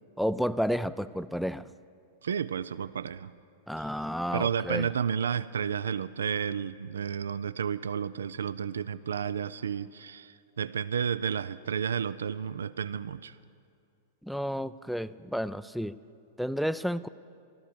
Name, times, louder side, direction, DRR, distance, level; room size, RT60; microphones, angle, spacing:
voice 1, 0.2-1.7 3.7-4.9 14.2-15.9 16.4-17.1, equal, ahead, 15 dB, 0.4 m, -31 dB
voice 2, 2.2-3.3 4.3-13.4, right 7 dB, 70° right, 16 dB, 0.3 m, -31 dB
14.5 x 13.5 x 6.9 m, 2.4 s
figure-of-eight pair, 100°, 0 cm